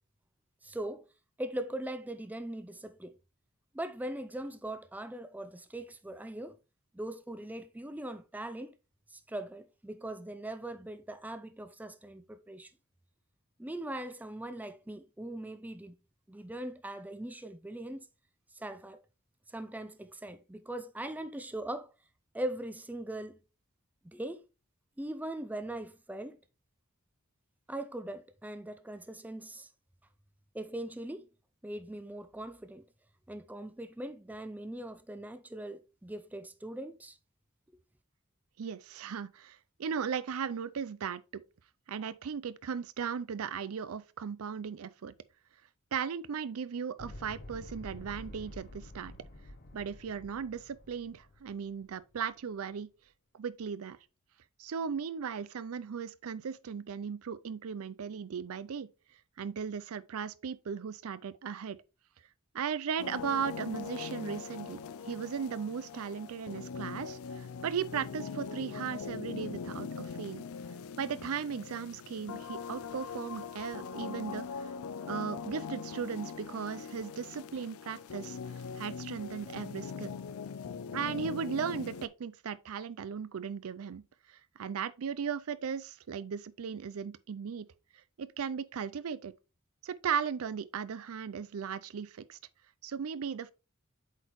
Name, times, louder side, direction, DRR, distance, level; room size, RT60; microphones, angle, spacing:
voice 1, 0.6-1.1 1.4-3.2 3.7-6.6 6.9-8.7 9.1-12.7 13.6-16.0 16.3-18.1 18.5-19.0 19.5-21.9 22.3-23.4 24.0-24.4 25.0-26.4 27.7-29.7 30.5-31.3 31.6-32.8 33.3-37.2, right 1 dB, 10° right, 0.5 m, -40 dB
voice 2, 38.6-41.4 41.9-45.1 45.9-49.1 49.7-52.9 53.3-54.0 54.6-58.9 59.4-61.8 62.5-70.4 71.0-74.7 75.1-78.4 78.7-80.2 80.9-84.0 84.3-87.7 88.2-89.3 89.8-92.4 92.8-93.5, right 7 dB, 80° right, 0.5 m, -37 dB
sound 1, 47.0-52.2, left 1 dB, 50° left, 0.9 m, -49 dB
sound 2, 63.0-82.1, left 6 dB, 75° left, 0.4 m, -42 dB
8.1 x 4.2 x 3.0 m
head